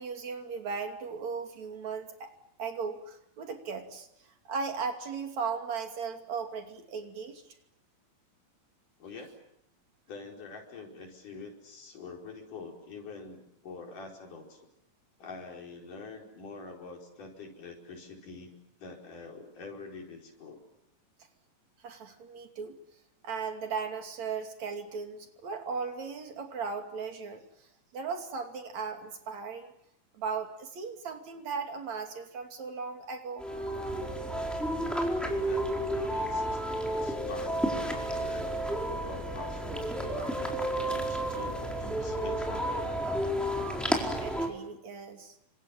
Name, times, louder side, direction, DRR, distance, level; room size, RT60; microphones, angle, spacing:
voice 1, 0.0-2.3 2.6-4.1 4.5-7.4 21.8-22.8 23.2-27.4 27.9-29.7 30.1-33.4 44.2-45.4, right 5 dB, 60° right, 5 dB, 3.9 m, -37 dB
voice 2, 9.0-9.3 10.1-14.6 15.2-18.5 18.8-20.6 35.4-36.6 37.0-38.4 39.0-43.0, left 4 dB, 80° left, 1 dB, 6.3 m, -45 dB
sound 1, 33.4-44.5, right 1 dB, ahead, 4.2 m, -31 dB
28.5 x 25.5 x 7.5 m, 0.77 s
omnidirectional pair, 3.6 m